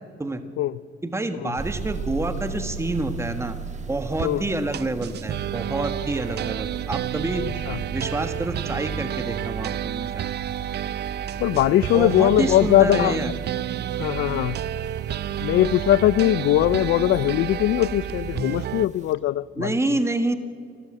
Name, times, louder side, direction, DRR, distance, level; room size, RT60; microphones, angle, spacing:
voice 1, 1.0-3.6 3.9-7.4 7.9-10.2 11.9-13.3 19.6-20.4, right 2 dB, 15° right, 8 dB, 1.4 m, -27 dB
sound 1, 1.6-19.1, right 4 dB, 35° right, 1.3 m, -38 dB
sound 2, 4.2-4.3 4.7-18.9, right 11 dB, 55° right, 0.5 m, -30 dB
voice 2, 11.4-13.3 14.0-14.6 15.1-20.0, left 13 dB, 75° left, 18 dB, 0.4 m, -21 dB
26.5 x 14.0 x 7.6 m, 2.2 s
cardioid pair, 90°, 20 cm